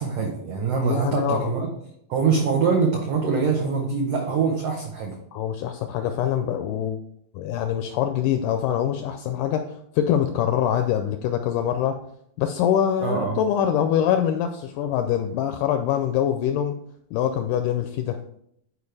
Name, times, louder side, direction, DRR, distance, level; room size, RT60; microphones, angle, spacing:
voice 1, 0.0-1.7 2.1-5.2 13.0-13.4, right 5 dB, 80° right, 0 dB, 1.4 m, -23 dB
voice 2, 0.8-1.5 5.3-7.0 7.3-12.0 12.4-16.7 17.1-18.2, left 9 dB, 85° left, 6 dB, 1.8 m, -24 dB
10.5 x 4.7 x 3.3 m, 0.72 s
omnidirectional pair, 4.1 m